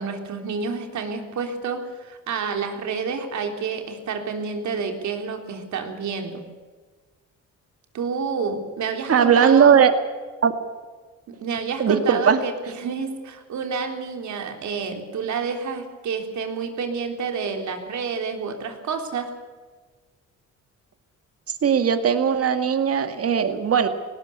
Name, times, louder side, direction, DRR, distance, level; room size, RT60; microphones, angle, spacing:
voice 1, 0.0-6.4 7.9-9.7 11.4-19.3, right 5 dB, 70° right, 4 dB, 3.6 m, -29 dB
voice 2, 9.1-10.0 10.4-10.5 11.8-12.4 21.6-23.9, right 7 dB, 50° right, 8 dB, 2.1 m, -18 dB
18.5 x 18.0 x 8.4 m, 1.4 s
cardioid pair, 90°, 30 cm